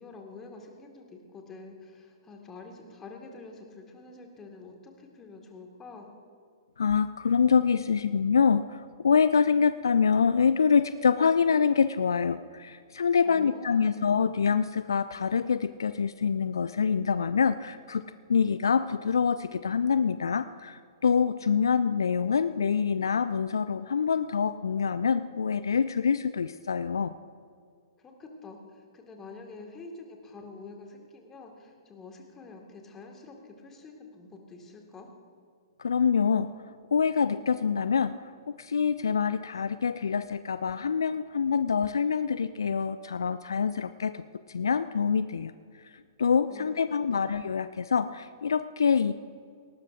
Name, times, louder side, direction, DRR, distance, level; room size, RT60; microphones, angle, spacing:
voice 1, 0.0-6.1 13.2-14.1 28.0-35.1 46.5-46.8 47.1-47.3, left 3 dB, 15° left, 2 dB, 2.0 m, -47 dB
voice 2, 6.8-27.1 35.8-38.3 38.6-44.2 44.5-45.5 45.8-49.1, left 6 dB, 65° left, 13 dB, 0.4 m, -26 dB
19.0 x 18.5 x 2.6 m, 2.3 s
figure-of-eight pair, 115°, 2 cm